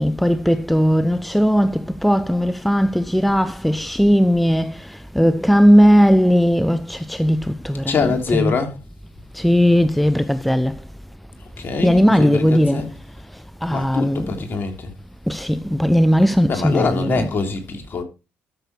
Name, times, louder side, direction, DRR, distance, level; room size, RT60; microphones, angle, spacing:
voice 1, 0.0-4.7 5.2-8.5 9.4-10.7 11.8-12.8 13.6-14.3 15.3-17.3, equal, ahead, 0.7 m, -17 dB
voice 2, 7.9-8.7 11.6-12.9 13.7-14.9 16.5-18.0, left 4 dB, 45° left, 3.3 m, -24 dB
12.5 x 6.7 x 4.5 m
supercardioid pair, 70°, 5 cm